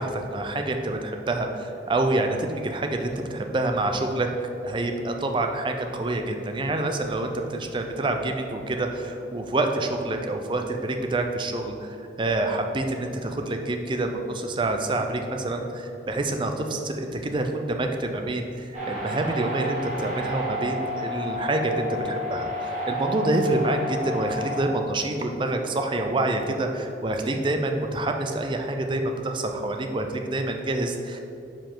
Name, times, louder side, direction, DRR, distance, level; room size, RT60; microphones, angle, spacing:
voice 1, 0.0-4.3 4.6-31.2, right 2 dB, 25° right, 5 dB, 0.4 m, -27 dB
sound 1, 18.7-24.6, left 1 dB, 45° right, 1.4 m, -31 dB
6.8 x 4.8 x 3.8 m, 2.8 s
head